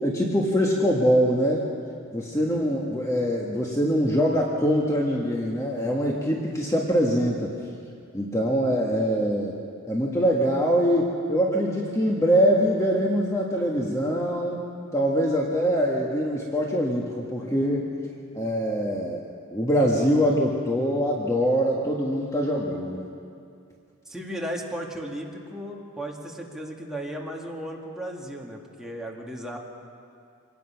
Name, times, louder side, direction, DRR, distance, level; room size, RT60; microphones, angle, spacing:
voice 1, 0.0-1.6 2.1-7.5 8.1-9.5 9.9-14.6 14.9-17.9 18.3-19.2 19.5-23.0, equal, 15° left, -2 dB, 1.5 m, -23 dB
voice 2, 24.1-29.6, equal, ahead, -2 dB, 2.2 m, -35 dB
25.5 x 19.0 x 5.8 m, 2.5 s
head